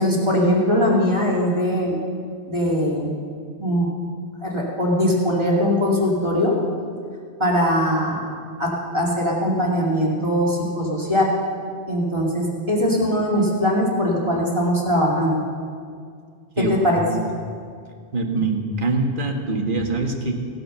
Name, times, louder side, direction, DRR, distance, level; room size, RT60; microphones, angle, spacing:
voice 1, 0.0-2.0 2.5-3.1 3.6-3.9 4.4-6.5 7.4-8.2 8.6-11.3 11.9-15.4 16.6-17.0, equal, 25° right, -4 dB, 2.4 m, -21 dB
voice 2, 16.6-17.2 18.1-20.3, right 3 dB, 50° right, 2 dB, 1.6 m, -24 dB
17.0 x 8.6 x 6.6 m, 2.2 s
omnidirectional pair, 1.2 m